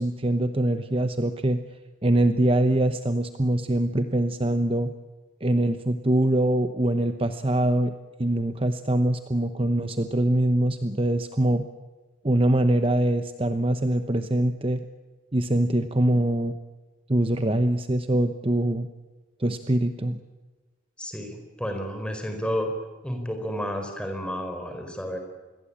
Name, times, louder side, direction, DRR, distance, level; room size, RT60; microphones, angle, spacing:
voice 1, 0.0-1.6 2.0-4.9 5.4-7.9 8.2-11.7 12.2-14.8 15.3-16.6 17.1-18.9 19.4-20.2, right 1 dB, 30° right, 9 dB, 0.9 m, -23 dB
voice 2, 21.0-22.7 23.0-25.2, equal, 5° left, 5 dB, 4.4 m, -31 dB
27.5 x 21.5 x 8.7 m, 1.3 s
head